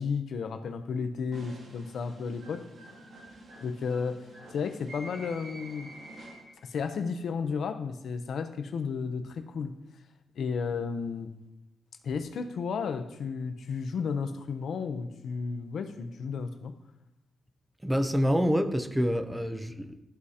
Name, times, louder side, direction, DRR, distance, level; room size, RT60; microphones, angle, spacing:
voice 1, 0.0-2.7 3.6-4.3 4.5-5.9 6.6-9.8 10.4-11.3 12.0-16.8, left 5 dB, 70° left, 0.6 m, -33 dB
sound 1, 1.3-6.7, right 1 dB, 85° right, 3.0 m, -48 dB
voice 2, 17.8-20.0, equal, 5° right, 0.6 m, -27 dB
13.5 x 4.8 x 2.8 m
wide cardioid pair, 130°, 0 cm